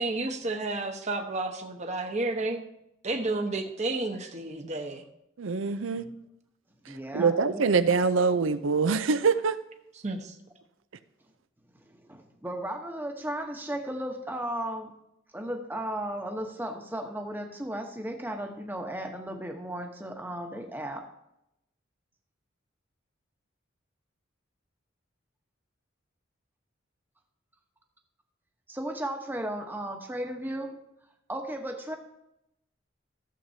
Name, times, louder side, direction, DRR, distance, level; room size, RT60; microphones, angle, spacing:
voice 1, 0.0-2.6 3.0-5.0 7.2-7.3 10.0-10.3, right 2 dB, 35° right, 1.0 m, -31 dB
voice 2, 5.4-6.1 6.9-9.6, right 4 dB, 85° right, 0.6 m, -25 dB
voice 3, 6.9-7.6 11.8-14.9 15.3-21.1 28.7-30.8 31.3-32.0, right 1 dB, 10° right, 1.0 m, -35 dB
15.0 x 7.4 x 2.8 m
head